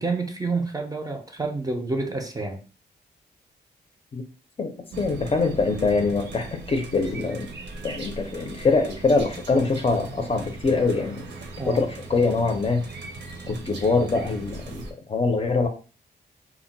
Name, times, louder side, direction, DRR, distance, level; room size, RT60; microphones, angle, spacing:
voice 1, 0.0-2.6 11.6-11.8, right 3 dB, 20° right, 0.4 m, -28 dB
voice 2, 4.6-7.5 7.8-11.3 11.7-12.8 13.5-14.8 15.1-15.7, left 3 dB, 35° left, 0.5 m, -24 dB
sound 1, 4.9-14.9, right 3 dB, 85° right, 0.6 m, -39 dB
2.2 x 2.0 x 3.8 m
wide cardioid pair, 110°, 18 cm